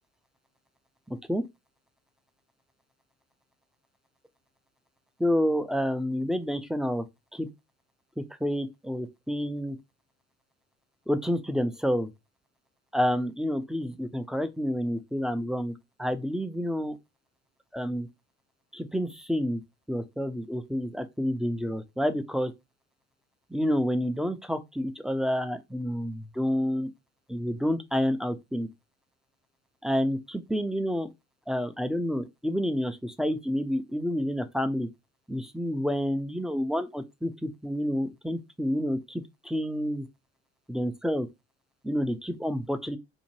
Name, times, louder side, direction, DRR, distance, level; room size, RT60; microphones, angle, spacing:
voice 1, 1.1-1.4 5.2-7.0 7.3-7.5 8.2-9.8 11.1-12.1 12.9-15.7 16.0-16.9 17.7-18.1 18.7-19.6 19.9-22.5 23.5-26.9 27.3-28.7 29.8-31.1 31.5-34.9 35.3-40.1 40.7-41.3 41.8-43.0, equal, ahead, 0.4 m, -29 dB
2.7 x 2.1 x 3.0 m
supercardioid pair, 75°, 29 cm